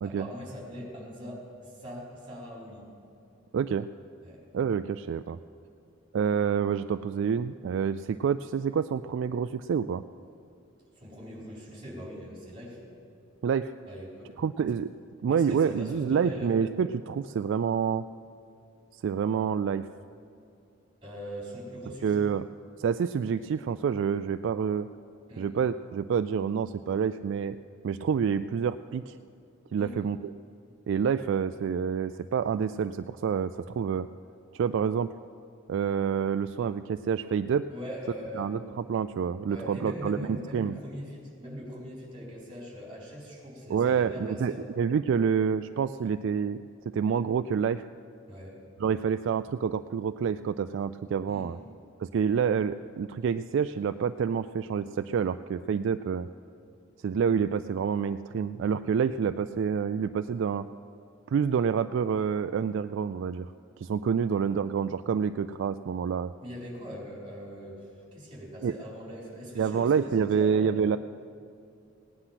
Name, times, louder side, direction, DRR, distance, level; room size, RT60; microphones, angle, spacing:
voice 1, 0.0-2.8 4.2-4.4 11.0-12.8 13.9-14.4 15.3-16.5 21.0-22.1 25.3-25.5 29.8-30.0 37.7-38.5 39.5-44.7 48.3-48.6 51.3-51.5 66.4-67.9 68.1-70.0 70.3-70.8, equal, 25° right, -4 dB, 4.2 m, -41 dB
voice 2, 3.5-3.9 4.5-5.4 6.1-10.0 13.4-13.7 14.4-14.9 15.2-18.1 18.9-19.9 22.0-22.5 22.8-24.9 25.4-27.6 27.8-29.2 29.7-30.3 30.9-34.1 34.5-35.1 35.7-37.7 38.3-40.8 43.7-46.6 46.9-47.8 48.8-51.6 52.0-56.3 57.0-60.7 61.3-63.5 63.8-66.3 68.6-68.8 69.6-71.0, right 7 dB, 65° right, 11 dB, 0.3 m, -28 dB
17.5 x 9.9 x 5.8 m, 2.6 s
head